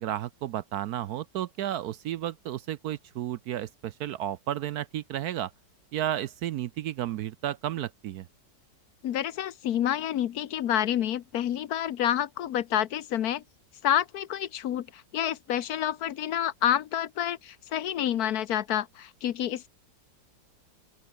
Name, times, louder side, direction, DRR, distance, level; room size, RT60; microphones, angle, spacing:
voice 1, 0.0-5.5 5.9-8.3, right 12 dB, 70° right, 1.0 m, -32 dB
voice 2, 9.0-13.4 13.8-19.7, left 11 dB, 65° left, 1.2 m, -28 dB
open air
omnidirectional pair, 2.0 m